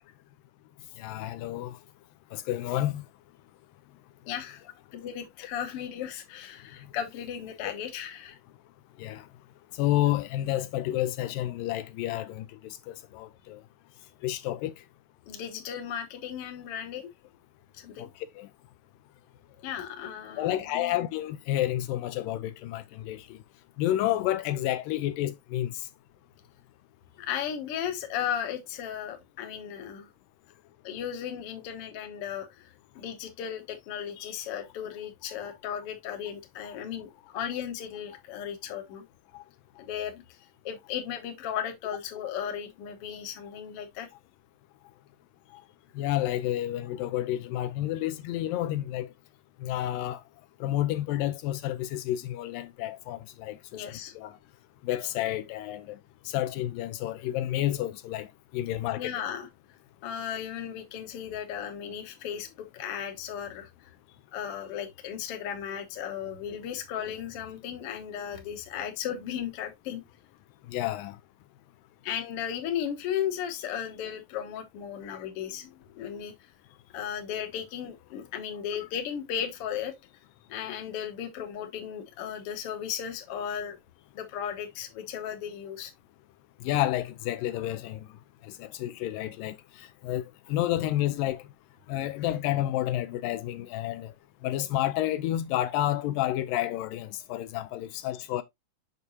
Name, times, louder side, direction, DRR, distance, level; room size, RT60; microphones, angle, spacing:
voice 1, 1.0-1.8 2.3-3.0 9.0-9.3 9.8-13.6 14.2-14.7 18.0-18.1 18.4-18.5 20.4-23.4 23.8-25.7 39.3-39.4 46.0-49.1 49.6-50.2 50.6-53.9 54.2-54.4 54.8-56.0 56.3-58.3 58.5-59.1 70.7-71.2 75.0-75.1 86.6-88.1 88.4-90.2 90.5-91.4 91.9-94.1 94.4-98.4, left 13 dB, 85° left, 2.2 m, -30 dB
voice 2, 4.2-4.6 4.9-8.4 15.3-17.1 17.8-18.1 19.6-20.9 27.2-30.1 30.8-39.0 39.8-40.2 40.6-44.1 53.7-54.1 59.0-59.5 60.0-63.7 64.3-70.0 72.0-76.3 76.9-79.9 80.5-83.8 84.1-85.9 98.1-98.2, left 9 dB, 60° left, 1.6 m, -35 dB
6.7 x 6.0 x 2.7 m
omnidirectional pair, 4.0 m